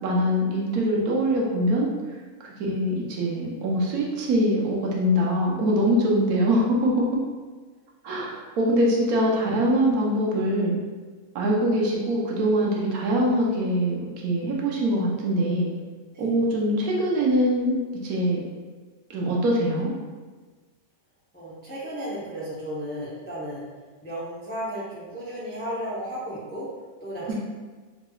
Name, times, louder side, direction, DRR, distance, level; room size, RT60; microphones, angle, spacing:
voice 1, 0.0-1.9 2.6-7.1 8.0-10.7 11.3-15.7 16.2-18.4 19.1-19.9 27.3-27.4, equal, 80° right, -3 dB, 1.2 m, -23 dB
voice 2, 21.3-23.6 24.0-26.7 27.0-27.3, equal, 15° left, -8 dB, 0.4 m, -34 dB
4.0 x 2.9 x 2.3 m, 1.4 s
omnidirectional pair, 1.6 m